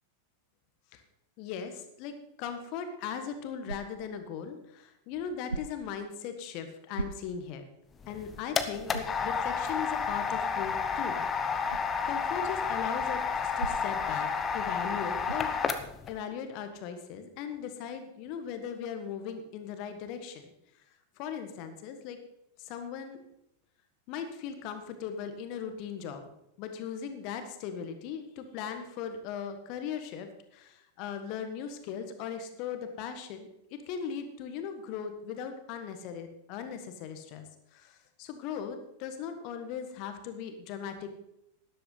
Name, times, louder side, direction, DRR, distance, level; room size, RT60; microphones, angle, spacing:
voice 1, 1.4-7.7 8.1-11.7 12.0-15.5 16.1-20.5 21.2-22.2 22.6-23.2 24.1-26.3 26.6-41.1, left 7 dB, 45° left, 8 dB, 1.6 m, -39 dB
sound 1, 3.6-4.2 5.5-6.0 6.9-7.6 8.1-8.2 8.9-9.3 11.7-11.9 13.6-14.1 15.2-15.6, right 3 dB, 80° right, 0.5 m, -38 dB
sound 2, 8.0-16.1, left 6 dB, 20° left, 0.9 m, -31 dB
12.5 x 11.0 x 4.0 m, 0.83 s
figure-of-eight pair, 90°, 0 cm